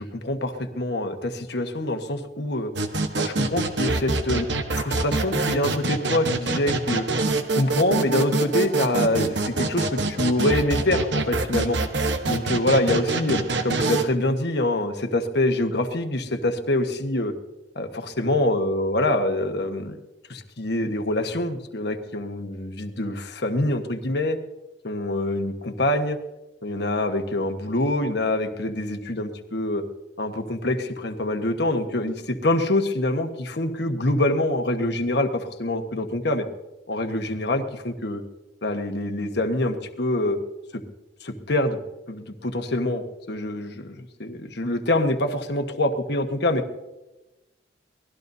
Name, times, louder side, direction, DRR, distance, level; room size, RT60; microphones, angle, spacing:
voice 1, 0.0-2.7 3.2-4.5 4.7-7.1 7.5-11.8 12.2-17.3 17.7-20.0 20.3-24.4 24.8-26.2 26.6-29.8 30.2-36.5 36.9-38.2 38.6-40.4 40.7-40.8 41.2-41.8 42.1-46.6, left 1 dB, 60° left, 6 dB, 1.4 m, -25 dB
sound 1, 2.8-14.1, right 3 dB, 65° right, 1.1 m, -25 dB
24.0 x 18.0 x 2.8 m, 1.0 s
head